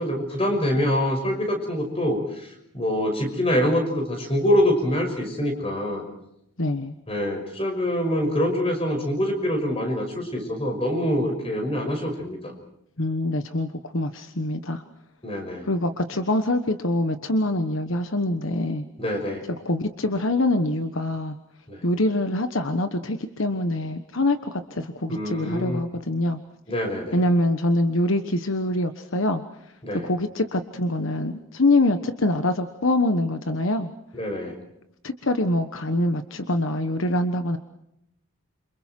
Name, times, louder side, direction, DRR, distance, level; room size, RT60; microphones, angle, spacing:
voice 1, 0.0-2.5 2.7-6.0 7.1-12.5 15.2-15.7 19.0-19.4 21.7-21.8 25.1-25.8 26.7-27.2 29.8-30.1 34.1-34.5, equal, 25° left, 4 dB, 5.9 m, -25 dB
voice 2, 6.6-6.9 13.0-14.8 15.6-18.8 19.6-21.4 21.8-26.4 27.1-29.4 30.0-33.9 35.0-37.6, left 1 dB, 70° left, 8 dB, 1.3 m, -24 dB
29.0 x 26.5 x 4.6 m, 0.79 s
head